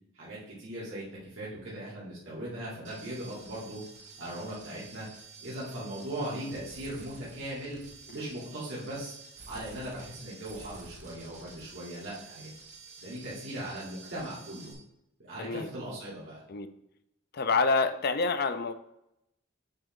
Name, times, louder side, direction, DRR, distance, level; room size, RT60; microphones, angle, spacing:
voice 1, 0.1-1.0 1.3-3.8 4.2-5.1 5.4-7.8 8.1-9.2 9.5-12.5 13.0-14.7 15.2-16.4, right 1 dB, 70° right, -9 dB, 2.5 m, -39 dB
sound 1, 2.8-14.7, right 4 dB, 35° right, 1.4 m, -50 dB
voice 2, 15.4-15.7 16.5-16.7 17.3-18.7, left 4 dB, 50° left, 10 dB, 0.5 m, -27 dB
6.5 x 3.7 x 6.1 m, 0.82 s
head